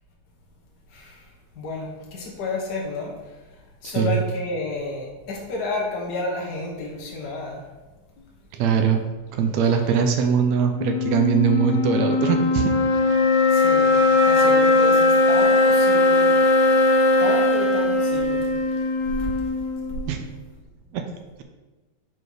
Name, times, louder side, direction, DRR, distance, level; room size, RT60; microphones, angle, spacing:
voice 1, 0.9-1.3 1.5-3.1 3.8-7.6 13.5-16.3 17.2-18.5, left 2 dB, 50° left, -2 dB, 1.2 m, -31 dB
voice 2, 3.8-4.2 8.5-9.0 9.3-12.7 20.1-20.2 20.9-21.0, right 7 dB, 75° right, 5 dB, 1.8 m, -21 dB
sound 1, 10.7-20.2, left 2 dB, 75° left, 2.0 m, -19 dB
6.7 x 4.2 x 4.9 m, 1.2 s
omnidirectional pair, 3.4 m